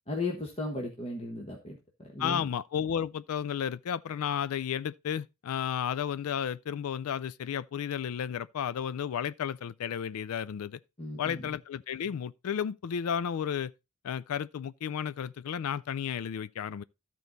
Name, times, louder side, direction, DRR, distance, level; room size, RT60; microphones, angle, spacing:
voice 1, 0.1-2.5 11.0-11.6, left 2 dB, 30° left, 1.3 m, -36 dB
voice 2, 2.2-10.8 11.2-13.7 14.0-16.8, left 8 dB, 85° left, 0.4 m, -33 dB
13.5 x 4.6 x 3.9 m
head